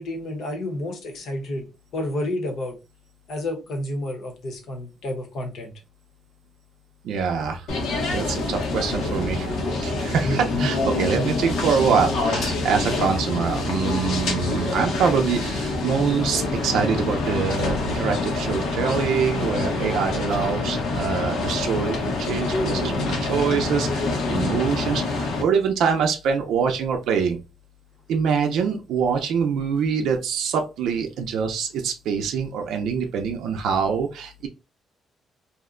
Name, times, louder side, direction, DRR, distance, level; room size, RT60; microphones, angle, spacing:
voice 1, 0.0-1.7 1.9-2.8 3.3-5.7 10.3-10.7 11.1-11.3, left 1 dB, 50° left, 3 dB, 0.9 m, -30 dB
voice 2, 7.0-7.7 8.1-27.4 28.1-34.5, right 6 dB, 75° right, 3 dB, 0.5 m, -25 dB
sound 1, 7.7-25.4, left 3 dB, 75° left, 0.9 m, -26 dB
2.6 x 2.1 x 3.7 m, 0.29 s
cardioid pair, 180°, 0 cm